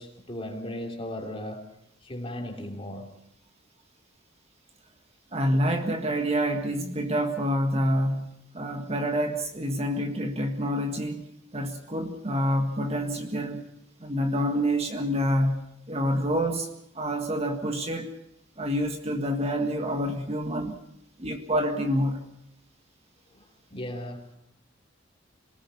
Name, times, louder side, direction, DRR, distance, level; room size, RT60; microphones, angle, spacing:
voice 1, 0.0-1.7 2.0-3.1 23.3-23.4 23.7-24.3, left 1 dB, 30° left, 3.2 m, -36 dB
voice 2, 5.3-11.3 11.5-13.6 14.0-16.7 17.0-18.1 18.6-20.8 21.2-22.2, equal, 30° right, 1.7 m, -27 dB
27.0 x 19.0 x 5.6 m
head